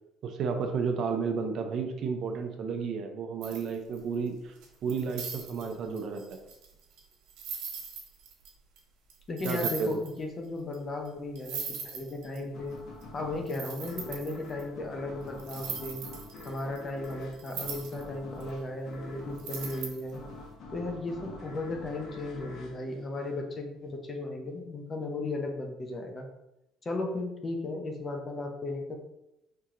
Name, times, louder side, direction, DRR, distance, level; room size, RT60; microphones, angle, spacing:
voice 1, 0.2-4.6 4.8-6.4 9.4-9.9, right 5 dB, 50° right, 5 dB, 0.6 m, -32 dB
sound 1, 3.4-4.2 4.6-8.5 8.8-8.9 9.1-9.2 9.4-10.2 10.7-10.8 11.1-11.2 11.4-12.4 13.0-13.1 13.5-14.6 15.4-18.0 18.4-18.5 19.4-20.2, right 6 dB, 90° right, 1.2 m, -39 dB
voice 2, 9.3-12.7 13.1-16.0 16.5-20.2 20.7-26.3 26.8-29.0, left 2 dB, 25° left, 3 dB, 0.7 m, -35 dB
sound 2, 12.5-23.8, left 2 dB, 50° left, 1.2 m, -46 dB
4.8 x 2.8 x 3.7 m, 0.87 s
cardioid pair, 150°, 0 cm